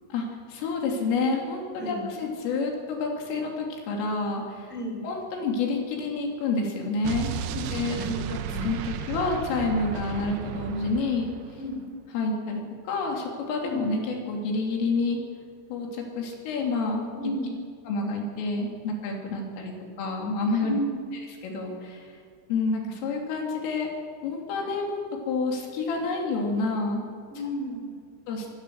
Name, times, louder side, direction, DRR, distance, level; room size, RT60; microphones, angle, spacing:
voice 1, 0.1-4.7 5.0-7.3 7.6-8.0 8.3-11.3 12.1-15.2 15.7-17.1 17.9-19.7 20.0-20.7 21.4-22.1 22.5-23.9 24.2-25.0 25.3-27.1 28.3-28.5, left 3 dB, 80° left, 0 dB, 5.4 m, -28 dB
voice 2, 1.8-2.1 4.7-5.0 7.5-7.6 7.9-8.7 11.6-11.8 13.6-13.8 17.1-17.5 20.6-21.0 27.3-27.9, equal, ahead, 1 dB, 3.4 m, -33 dB
Explosion, 7.0-11.8, right 9 dB, 90° right, 2.1 m, -34 dB
23.0 x 17.5 x 6.5 m, 2.1 s
omnidirectional pair, 5.7 m